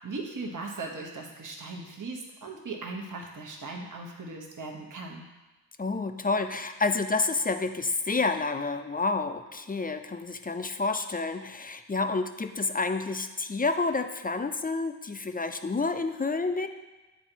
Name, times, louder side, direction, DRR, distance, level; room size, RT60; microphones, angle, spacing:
voice 1, 0.0-5.3, right 3 dB, 45° right, 0 dB, 1.1 m, -38 dB
voice 2, 5.8-16.7, left 3 dB, 20° left, 8 dB, 0.4 m, -29 dB
8.2 x 3.8 x 4.5 m, 1.1 s
cardioid pair, 60°, 43 cm